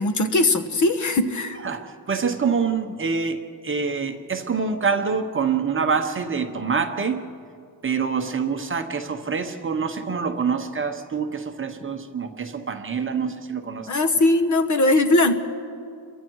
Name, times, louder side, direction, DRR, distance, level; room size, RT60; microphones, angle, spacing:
voice 1, 0.0-1.6 13.9-15.4, left 2 dB, 45° left, 8 dB, 1.3 m, -20 dB
voice 2, 1.6-7.2 7.8-13.9, right 5 dB, 30° right, 6 dB, 1.0 m, -26 dB
30.0 x 23.0 x 4.7 m, 2.4 s
wide cardioid pair, 165°, 43 cm